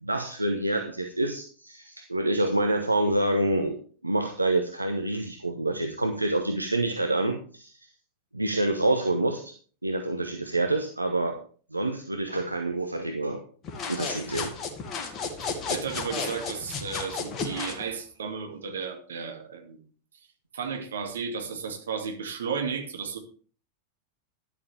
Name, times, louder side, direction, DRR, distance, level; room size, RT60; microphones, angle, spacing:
voice 1, 0.0-3.8 4.0-7.9 8.3-9.5 9.8-11.4 11.7-13.4 13.9-14.5, right 2 dB, 85° right, 5 dB, 1.1 m, -27 dB
sound 1, 13.6-17.8, left 4 dB, 30° left, 2.3 m, -33 dB
voice 2, 15.4-19.8 20.5-23.2, right 6 dB, 65° right, 4 dB, 2.3 m, -34 dB
12.0 x 11.5 x 3.5 m, 0.41 s
figure-of-eight pair, 90°, 0 cm